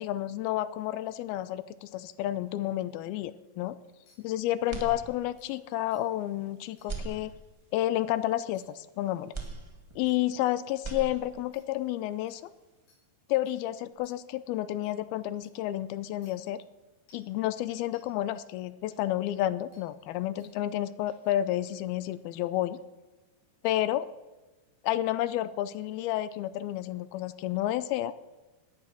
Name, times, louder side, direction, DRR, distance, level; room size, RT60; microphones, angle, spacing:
voice 1, 0.0-3.7 4.2-7.3 7.7-9.3 10.0-12.4 13.3-16.6 17.1-22.8 23.6-24.1 24.8-28.1, left 13 dB, 80° left, 15 dB, 2.4 m, -30 dB
sound 1, 4.1-4.2 4.9-5.0 5.4-5.5 5.9-6.0 6.8-6.9 8.5-8.6 9.4-9.5 10.1-10.2 10.7-10.8 11.5-11.6 12.3-12.4 12.9-13.0 13.5-13.6 14.0-14.2 14.8-14.9 15.4-15.5 16.2-16.3 17.1-17.3 17.9-18.0 18.9-19.0 19.7-19.8 20.4-20.5 21.1-21.3, left 2 dB, 60° left, 5.0 m, -63 dB
sound 2, 4.7-5.6 6.0-6.1 6.8-7.8 9.3-10.4 10.7-11.6, right 3 dB, 30° right, 0.5 m, -40 dB
18.5 x 9.8 x 6.1 m, 1.1 s
omnidirectional pair, 4.6 m